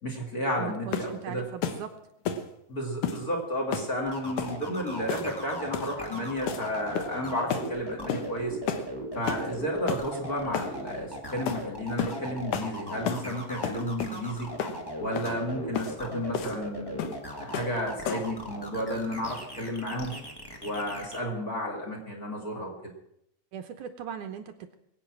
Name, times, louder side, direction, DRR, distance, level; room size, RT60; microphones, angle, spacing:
voice 1, 0.0-1.5 2.7-8.6 9.1-14.5 15.0-20.1 20.6-22.9, equal, 30° left, 2 dB, 2.5 m, -32 dB
voice 2, 0.6-1.9 23.5-24.7, right 8 dB, 75° right, 7 dB, 2.2 m, -39 dB
sound 1, 0.9-1.2 1.6-1.8 2.3-2.5 3.0-3.2 3.7-3.9 4.4-4.6 5.1-5.4 5.7-6.0 6.5-6.6 7.0-7.2 7.5-7.7 8.1-8.3 8.7-8.9 9.3-9.5 9.9-10.1 10.5-10.7 11.5-11.6 12.0-12.2 12.5-12.7 13.1-13.3 13.6-14.2 14.6-14.8 15.2-15.3 15.8-15.9 16.3-16.6 17.0-17.2 17.5-17.8 18.1-18.3, left 7 dB, 70° left, 2.5 m, -31 dB
sound 2, 4.1-21.2, equal, 15° left, 0.9 m, -38 dB
22.0 x 8.7 x 6.1 m, 0.76 s
omnidirectional pair, 4.0 m